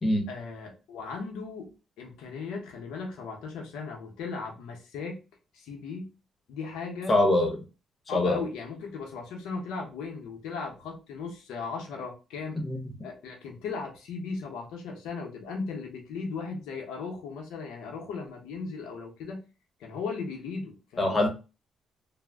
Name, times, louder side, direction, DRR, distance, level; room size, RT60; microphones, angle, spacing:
voice 1, 0.3-1.7 2.0-5.2 5.5-6.1 6.5-7.2 8.1-12.6 13.0-19.4 19.8-21.3, left 4 dB, 90° left, 1 dB, 0.6 m, -37 dB
voice 2, 7.1-7.6 8.1-8.4 12.6-12.8 21.0-21.3, left 1 dB, 30° left, 3 dB, 1.0 m, -23 dB
2.4 x 2.0 x 3.3 m, 0.30 s
cardioid pair, 90°, 0 cm